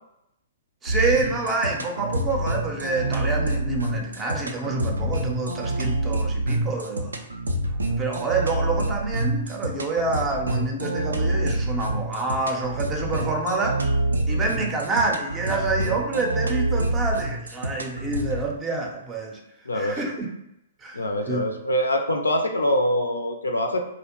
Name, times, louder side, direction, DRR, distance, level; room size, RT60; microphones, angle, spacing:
voice 1, 0.8-7.1 8.0-13.8 14.3-19.4 19.7-20.3 20.8-21.4, right 3 dB, 20° right, 1 dB, 0.5 m, -27 dB
sound 1, 0.9-18.4, right 1 dB, 85° right, 0.3 m, -27 dB
voice 2, 19.7-20.0 20.9-23.8, equal, 85° left, 5 dB, 0.4 m, -24 dB
2.5 x 2.0 x 2.9 m, 0.83 s
figure-of-eight pair, 120°, 0 cm